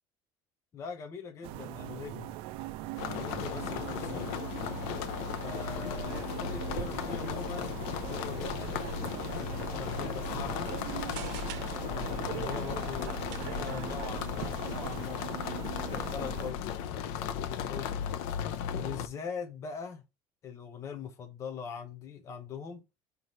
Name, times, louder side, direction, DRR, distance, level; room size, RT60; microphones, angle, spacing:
voice 1, 0.7-2.3 3.1-4.4 5.4-7.8 8.1-8.8 9.2-10.7 11.8-15.3 15.8-18.0 18.7-20.0 20.4-22.8, left 6 dB, 30° left, 0.9 m, -42 dB
sound 1, 1.4-16.5, right 15 dB, 60° right, 0.4 m, -41 dB
sound 2, 3.0-19.1, left 8 dB, 75° left, 0.6 m, -36 dB
sound 3, 5.8-15.0, right 11 dB, 80° right, 0.8 m, -44 dB
5.4 x 3.2 x 5.4 m
cardioid pair, 165°, 10 cm